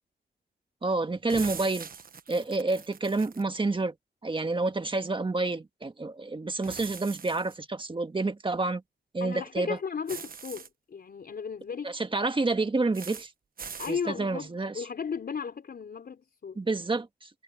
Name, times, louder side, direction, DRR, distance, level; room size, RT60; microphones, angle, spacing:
voice 1, 0.8-1.9 2.3-3.9 4.2-8.8 9.1-9.8 11.8-13.3 13.9-14.8 16.6-17.3, right 3 dB, 30° right, 1.7 m, -29 dB
sound 1, 1.3-3.5 6.6-7.6 10.1-10.7 12.9-13.3 13.6-14.0, right 6 dB, 55° right, 1.2 m, -42 dB
voice 2, 9.2-12.0 13.8-14.5 14.7-16.6, left 6 dB, 60° left, 3.7 m, -35 dB
cardioid pair, 90°, 18 cm